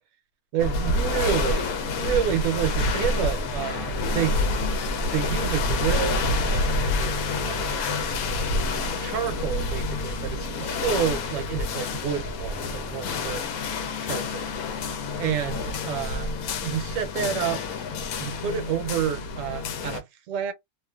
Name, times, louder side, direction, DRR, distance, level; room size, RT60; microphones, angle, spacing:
voice 1, 0.5-4.4 5.1-8.0 8.8-13.5 14.0-14.4 15.2-16.3 16.6-17.6 18.2-20.5, right 9 dB, 70° right, 1.0 m, -29 dB
sound 1, 0.6-20.0, left 2 dB, 85° left, 1.1 m, -28 dB
2.4 x 2.4 x 2.3 m
omnidirectional pair, 1.5 m